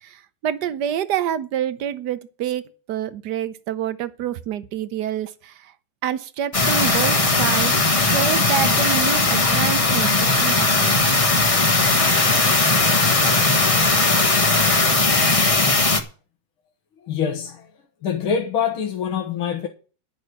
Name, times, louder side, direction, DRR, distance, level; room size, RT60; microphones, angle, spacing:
voice 1, 0.0-5.7 6.0-11.2, right 10 dB, 65° right, 1.2 m, -27 dB
sound 1, 6.5-16.0, left 3 dB, 20° left, 0.9 m, -18 dB
voice 2, 17.1-17.7 18.0-19.7, left 7 dB, 85° left, 2.2 m, -25 dB
11.0 x 6.4 x 8.0 m
omnidirectional pair, 2.2 m